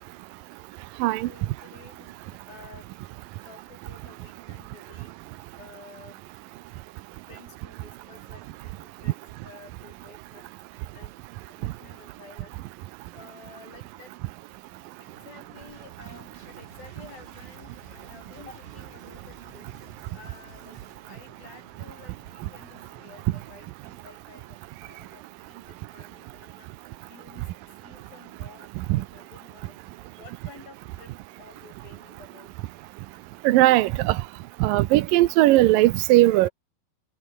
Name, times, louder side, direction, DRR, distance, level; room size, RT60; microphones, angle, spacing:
voice 1, 1.2-2.9 3.5-5.1 5.6-6.2 7.3-9.2 9.4-10.5 10.9-11.1 11.5-12.6 13.1-14.2 15.0-19.7 20.1-20.8 21.1-26.7 27.1-27.5 27.8-29.8 30.2-32.5, left 4 dB, 75° left, 8.7 m, -51 dB
sound 1, 15.0-23.5, right 4 dB, 40° right, 6.0 m, -53 dB
sound 2, 15.7-21.0, right 2 dB, 15° right, 4.7 m, -54 dB
voice 2, 33.4-34.2 34.6-36.5, right 17 dB, 75° right, 2.3 m, -18 dB
omnidirectional pair, 4.2 m